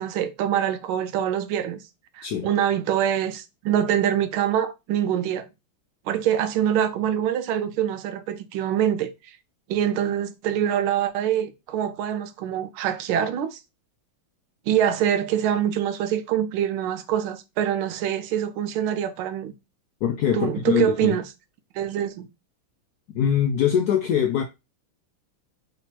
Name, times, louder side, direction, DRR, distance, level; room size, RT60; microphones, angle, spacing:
voice 1, 0.0-1.8 2.1-5.5 6.1-9.1 9.7-13.6 14.7-19.5 20.3-21.2 21.8-22.3, right 10 dB, 90° right, 1.5 m, -24 dB
voice 2, 2.2-2.5 20.0-21.1 23.1-24.4, left 9 dB, 90° left, 0.8 m, -23 dB
3.9 x 2.9 x 4.4 m
omnidirectional pair, 2.2 m